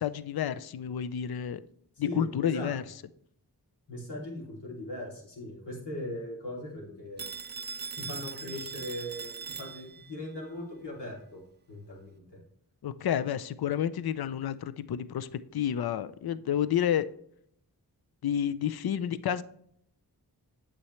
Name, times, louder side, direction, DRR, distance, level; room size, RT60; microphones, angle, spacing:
voice 1, 0.0-1.6 2.0-2.8 12.8-17.1 18.2-19.4, left 9 dB, 65° left, 14 dB, 0.5 m, -30 dB
voice 2, 2.0-2.7 3.9-7.3 7.9-11.4 11.7-12.4, left 1 dB, 90° left, -3 dB, 3.0 m, -39 dB
Telephone, 7.2-10.2, right 6 dB, 25° right, 0.4 m, -40 dB
8.6 x 7.0 x 3.2 m, 0.68 s
cardioid pair, 55°, 40 cm